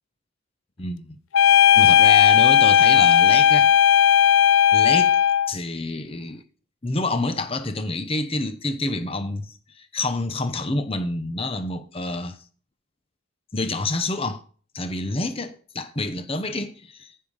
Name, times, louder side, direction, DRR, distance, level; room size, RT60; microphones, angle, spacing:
voice 1, 0.8-1.2 1.7-3.7 4.7-5.2 5.5-6.4 6.8-12.4 13.5-14.4 14.7-17.1, left 2 dB, 25° left, 0.8 m, -28 dB
sound 1, 1.3-5.5, left 9 dB, 70° left, 0.4 m, -15 dB
10.0 x 5.6 x 6.5 m
head